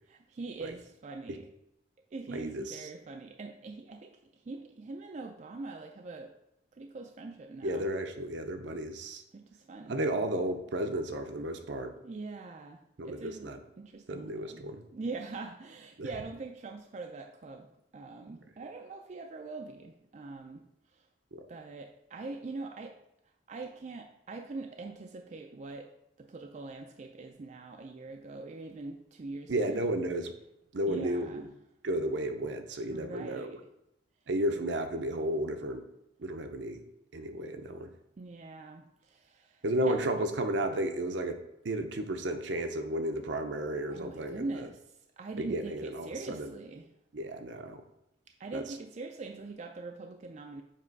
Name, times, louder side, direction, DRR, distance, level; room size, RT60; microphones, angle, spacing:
voice 1, 0.1-1.5 2.1-4.2 4.4-6.3 6.7-7.9 8.7-8.8 9.3-10.0 12.0-13.5 13.8-14.7 14.9-21.0 21.5-23.0 23.5-29.9 30.9-31.5 32.9-33.6 38.2-39.9 43.9-46.9 48.4-50.6, right 3 dB, 40° right, 4 dB, 0.4 m, -43 dB
voice 2, 2.3-2.9 7.6-9.2 9.9-11.9 13.0-13.6 14.1-14.8 16.0-16.1 29.5-30.3 30.7-31.4 31.8-33.6 34.3-35.8 36.2-36.8 37.1-37.9 39.6-41.4 41.6-44.7 45.4-46.5 47.1-47.8 48.5-48.6, right 1 dB, 75° right, 6 dB, 0.7 m, -33 dB
7.5 x 3.0 x 4.6 m, 0.82 s
head